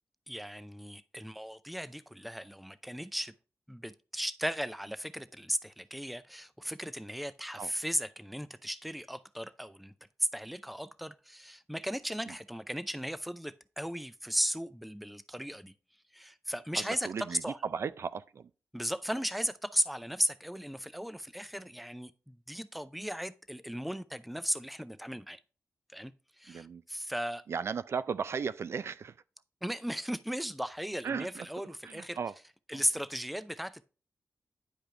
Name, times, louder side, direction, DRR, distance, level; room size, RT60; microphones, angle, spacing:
voice 1, 0.3-3.3 3.7-9.9 10.2-15.7 16.1-17.6 18.7-25.4 25.9-27.4 29.6-32.2 32.7-33.8, equal, ahead, 0.5 m, -36 dB
voice 2, 16.8-18.5 26.5-26.8 27.5-29.2 31.0-31.5 31.8-32.3 32.7-32.8, right 6 dB, 60° right, 0.4 m, -36 dB
10.5 x 5.0 x 3.3 m
wide cardioid pair, 115°, 5 cm